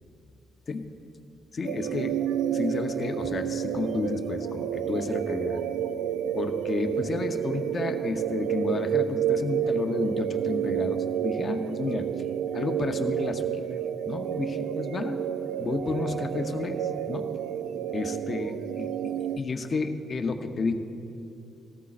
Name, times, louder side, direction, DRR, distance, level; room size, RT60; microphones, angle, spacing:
voice 1, 1.5-2.2 2.5-5.6 6.3-12.2 12.5-13.6 14.1-15.2 15.6-17.3 17.9-20.7, left 3 dB, 40° left, 6 dB, 0.9 m, -31 dB
sound 1, 1.6-19.4, right 9 dB, 80° right, 0.4 m, -30 dB
18.5 x 13.5 x 2.5 m, 2.6 s
cardioid pair, 90°, 0 cm